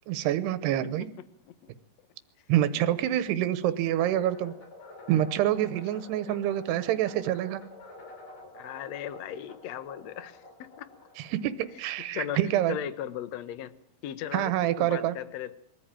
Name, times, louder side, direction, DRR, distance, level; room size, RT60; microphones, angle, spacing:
voice 1, 0.1-1.1 2.5-4.5 5.1-7.6 11.2-11.5 11.8-12.8 14.3-15.1, right 12 dB, 90° right, 12 dB, 3.1 m, -26 dB
voice 2, 2.7-3.2 6.3-6.4 8.5-10.9 12.1-12.4 12.7-13.8 14.0-15.6, left 10 dB, 65° left, 13 dB, 1.7 m, -37 dB
sound 1, 4.0-12.3, left 2 dB, 35° left, 6.0 m, -49 dB
23.5 x 15.0 x 9.0 m, 0.65 s
omnidirectional pair, 4.6 m